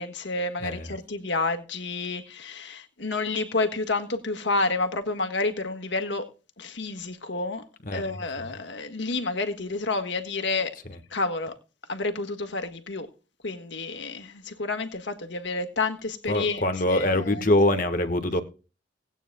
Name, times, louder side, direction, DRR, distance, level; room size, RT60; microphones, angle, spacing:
voice 1, 0.0-6.3 6.6-7.6 7.9-10.8 11.1-11.6 11.9-13.1 13.4-17.5, left 3 dB, 80° left, 1.6 m, -29 dB
voice 2, 0.6-0.9 7.8-8.5 16.3-18.4, left 1 dB, 45° left, 1.4 m, -24 dB
19.0 x 9.1 x 2.2 m
head